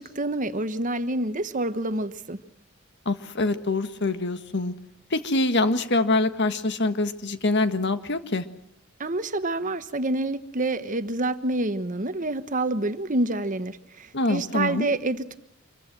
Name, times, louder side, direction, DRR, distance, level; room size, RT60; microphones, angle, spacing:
voice 1, 0.0-2.4 9.0-15.4, right 2 dB, 40° right, 11 dB, 1.2 m, -27 dB
voice 2, 3.0-4.7 5.1-8.4 14.1-14.9, left 2 dB, 55° left, 10 dB, 1.7 m, -25 dB
26.5 x 23.0 x 6.2 m, 0.73 s
head